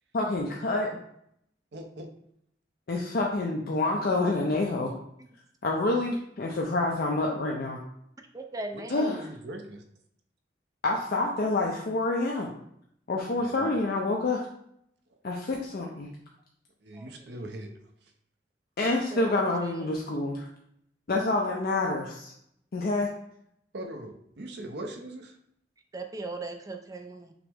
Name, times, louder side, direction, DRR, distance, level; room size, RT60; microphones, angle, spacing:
voice 1, 0.1-1.0 2.9-4.9 5.6-7.8 8.9-9.3 10.8-12.5 13.1-14.5 15.2-16.1 18.8-20.5 21.1-22.3 22.7-23.1, left 2 dB, 55° left, -1 dB, 0.5 m, -27 dB
voice 2, 1.7-2.1 8.7-9.8 13.3-13.7 16.8-17.7 23.7-25.4, right 1 dB, 70° right, 4 dB, 0.6 m, -40 dB
voice 3, 8.3-9.1 16.9-17.4 19.1-19.2 19.6-20.1 25.9-27.3, right 2 dB, 20° right, 5 dB, 0.4 m, -39 dB
5.8 x 2.0 x 3.5 m, 0.72 s
head